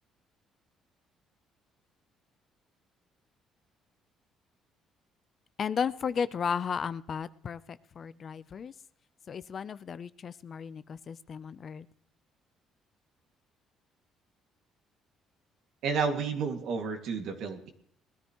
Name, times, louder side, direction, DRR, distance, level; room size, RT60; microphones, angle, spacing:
voice 1, 5.6-8.7 9.3-11.9, left 7 dB, 45° left, 15 dB, 0.6 m, -34 dB
voice 2, 15.8-17.7, right 5 dB, 75° right, 4 dB, 2.2 m, -31 dB
20.5 x 13.5 x 3.1 m, 0.69 s
cardioid pair, 110°, 0 cm